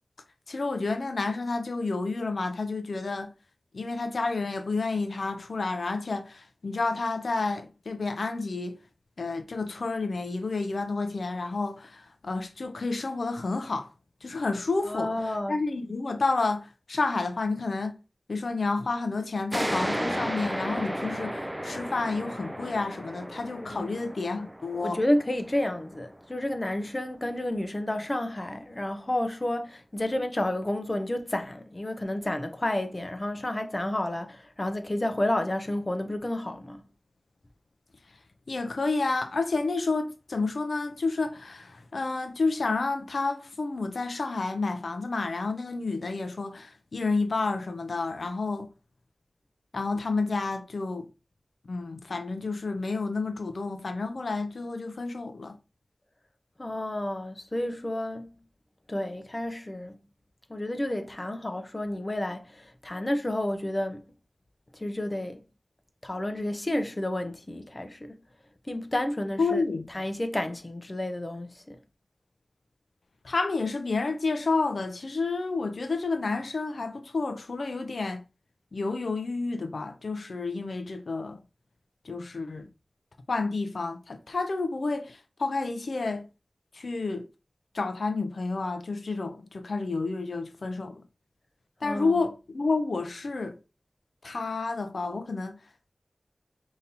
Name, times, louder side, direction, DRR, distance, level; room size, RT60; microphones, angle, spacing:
voice 1, 0.5-3.3 3.7-8.8 9.2-13.9 14.2-17.9 18.3-25.0 38.5-48.7 49.7-51.1 51.7-55.6 69.4-69.9 73.2-78.2 78.7-81.4 82.0-82.7 83.3-86.3 86.7-87.3 87.7-91.0 91.8-93.6 94.2-95.6, left 3 dB, 85° left, 0.5 m, -30 dB
voice 2, 14.8-15.6 23.6-23.9 24.7-36.8 56.6-58.3 58.9-59.9 60.5-64.0 64.7-65.4 66.0-68.1 68.7-69.6 69.9-71.8 91.8-92.2, left 1 dB, 35° left, 0.7 m, -30 dB
sound 1, 19.5-26.7, equal, 10° right, 0.4 m, -34 dB
5.2 x 2.8 x 2.8 m
wide cardioid pair, 45°, 0 cm